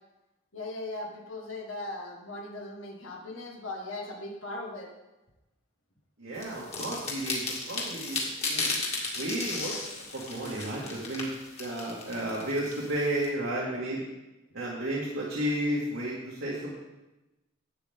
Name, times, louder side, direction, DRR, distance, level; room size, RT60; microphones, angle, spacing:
voice 1, 0.5-4.9, left 2 dB, 75° left, 0 dB, 1.6 m, -38 dB
voice 2, 6.2-8.7 9.1-9.7 10.1-11.3 11.6-14.0 14.5-16.7, right 1 dB, 80° right, -6 dB, 2.3 m, -32 dB
sound 1, 6.4-13.3, left 3 dB, 30° left, 2.1 m, -35 dB
11.5 x 8.6 x 3.7 m, 1.0 s
head